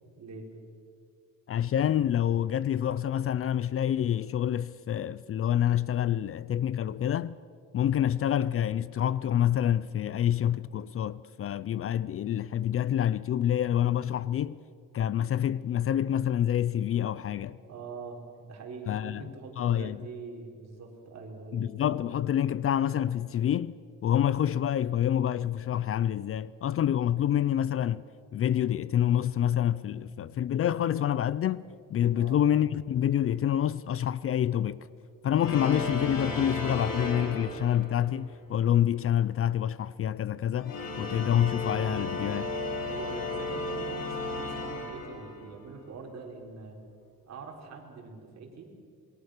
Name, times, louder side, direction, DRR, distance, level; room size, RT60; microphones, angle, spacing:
voice 1, 0.2-0.5 17.6-21.7 32.1-32.4 42.7-46.8 47.3-48.7, right 4 dB, 50° right, 4.8 m, -43 dB
voice 2, 1.5-7.4 7.7-14.6 14.9-17.6 18.9-20.0 21.5-23.7 24.0-28.0 28.3-31.6 31.9-34.8 35.2-42.5, left 10 dB, 40° left, 0.5 m, -27 dB
sound 1, 35.4-38.2 40.4-45.6, left 2 dB, 70° left, 5.1 m, -34 dB
27.0 x 23.0 x 6.6 m
cardioid pair, 145°, 33 cm